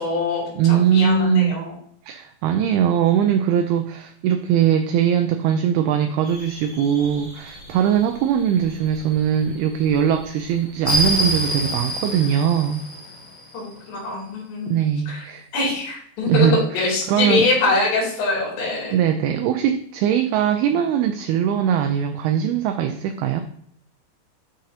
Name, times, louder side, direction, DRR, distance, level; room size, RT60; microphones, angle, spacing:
voice 1, 0.0-1.7 13.5-14.7 15.1-15.2 15.5-18.9, left 3 dB, 80° left, -3 dB, 5.0 m, -23 dB
voice 2, 0.6-1.6 2.1-12.8 14.7-15.5 16.3-17.5 18.9-23.4, right 9 dB, 85° right, 7 dB, 2.3 m, -21 dB
sound 1, 6.2-13.7, equal, 20° left, 1.0 m, -29 dB
11.5 x 5.3 x 2.8 m, 0.65 s
omnidirectional pair, 4.9 m